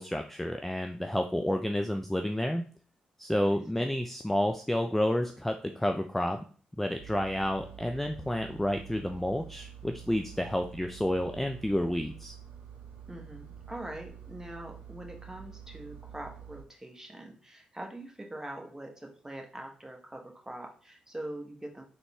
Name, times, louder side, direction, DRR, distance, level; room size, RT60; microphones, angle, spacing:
voice 1, 0.0-2.6 3.2-6.4 6.8-12.4, left 1 dB, 5° left, 4 dB, 0.3 m, -30 dB
voice 2, 3.5-4.0 13.1-21.8, right 1 dB, 15° right, 2 dB, 1.0 m, -43 dB
Engine, 7.0-16.6, right 8 dB, 75° right, 0.5 m, -48 dB
3.8 x 2.2 x 3.4 m, 0.42 s
hypercardioid pair, 40°, 3 cm